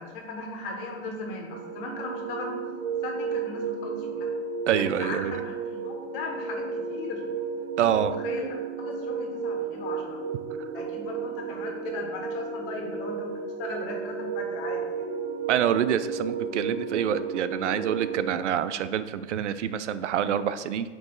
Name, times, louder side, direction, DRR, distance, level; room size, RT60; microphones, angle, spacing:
voice 1, 0.0-2.7 3.0-4.4 4.8-7.2 8.0-10.2 10.7-13.3 13.6-15.1, left 3 dB, 50° left, 0 dB, 1.6 m, -37 dB
sound 1, 1.5-18.4, right 6 dB, 35° right, 0.7 m, -33 dB
voice 2, 4.7-5.4 7.8-8.2 10.6-10.7 15.5-20.9, right 9 dB, 75° right, 13 dB, 0.5 m, -26 dB
8.8 x 3.1 x 4.0 m, 1.5 s
hypercardioid pair, 105°, 36 cm